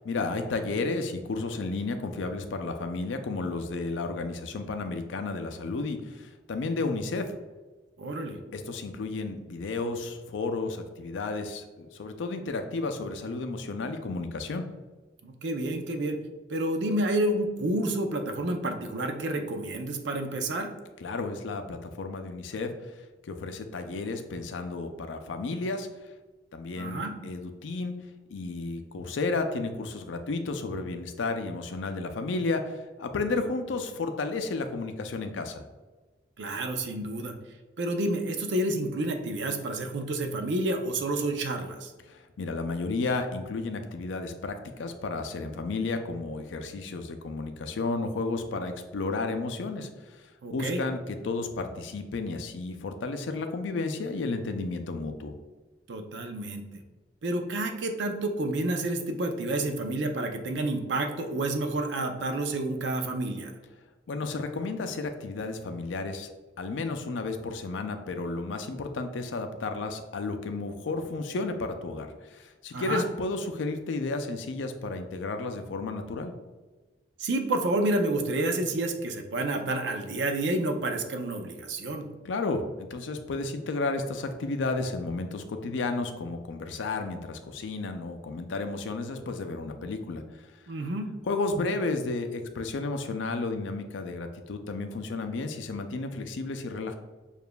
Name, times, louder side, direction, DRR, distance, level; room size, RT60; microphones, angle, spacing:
voice 1, 0.0-7.4 8.5-14.7 21.0-22.9 23.3-25.9 26.5-28.1 28.3-35.6 42.1-50.2 50.5-55.3 64.1-66.3 66.6-76.4 82.2-90.2 91.3-96.9, left 3 dB, 85° left, 7 dB, 0.4 m, -32 dB
voice 2, 8.0-8.4 15.2-16.2 16.5-20.7 26.8-27.1 36.4-37.3 37.8-41.9 50.4-50.8 55.9-56.6 57.2-63.5 72.7-73.0 77.2-82.1 90.7-91.1, right 2 dB, 70° right, 5 dB, 0.5 m, -29 dB
6.8 x 2.4 x 2.2 m, 1.3 s
head